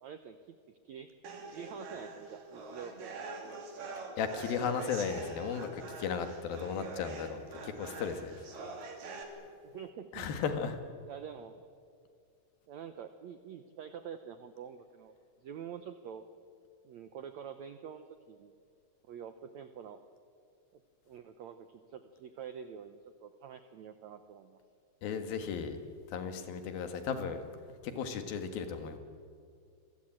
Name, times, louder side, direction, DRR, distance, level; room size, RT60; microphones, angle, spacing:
voice 1, 0.0-1.1 1.5-3.8 9.6-10.3 11.0-11.7 12.7-15.1 15.4-16.2 16.8-18.5 19.1-20.0 20.7-20.8 21.1-24.6, right 8 dB, 80° right, 9 dB, 1.6 m, -47 dB
sound 1, 1.2-9.2, right 3 dB, 60° right, 4.3 m, -45 dB
voice 2, 4.2-8.3 10.1-10.8 25.0-25.8 26.1-27.4 27.8-29.0, left 6 dB, 70° left, 8 dB, 3.4 m, -35 dB
27.0 x 22.0 x 8.8 m, 2.3 s
omnidirectional pair, 4.5 m